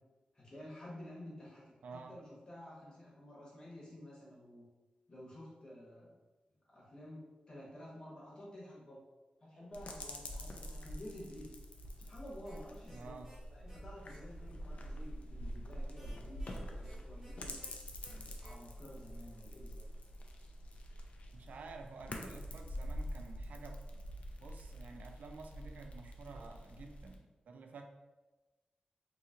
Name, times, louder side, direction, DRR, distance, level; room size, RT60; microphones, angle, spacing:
voice 1, 0.3-1.6 1.9-4.6 5.1-6.2 6.7-9.0 9.4-11.5 12.0-17.6 18.1-19.8, left 1 dB, 35° left, -5 dB, 1.1 m, -51 dB
voice 2, 1.8-2.2 12.9-13.3 21.3-23.8 24.4-27.9, right 4 dB, 85° right, 4 dB, 0.3 m, -51 dB
sound 1, 9.7-27.2, equal, 60° left, 0.4 m, -46 dB
sound 2, 12.4-12.5 12.9-13.0 13.2-13.4 13.7-13.8 14.1-14.2 15.9-16.9 17.2-17.3 17.6-17.7 18.0-18.1 18.4-18.5, right 1 dB, 25° right, 1.4 m, -60 dB
2.8 x 2.7 x 2.4 m, 1.2 s
wide cardioid pair, 85°, 3 cm